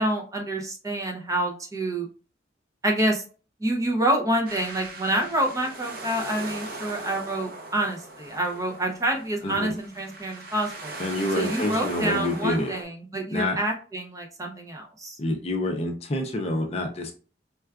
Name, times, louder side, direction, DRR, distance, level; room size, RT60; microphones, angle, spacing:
voice 1, 0.0-2.1 2.8-3.2 3.6-10.9 11.3-15.2, right 1 dB, 20° right, 1 dB, 0.5 m, -27 dB
sound 1, 4.5-12.8, right 2 dB, 55° right, 0.7 m, -39 dB
voice 2, 11.0-12.7 13.3-13.6 15.2-17.1, left 1 dB, 35° left, 3 dB, 0.5 m, -27 dB
4.5 x 2.3 x 2.3 m, 0.37 s
head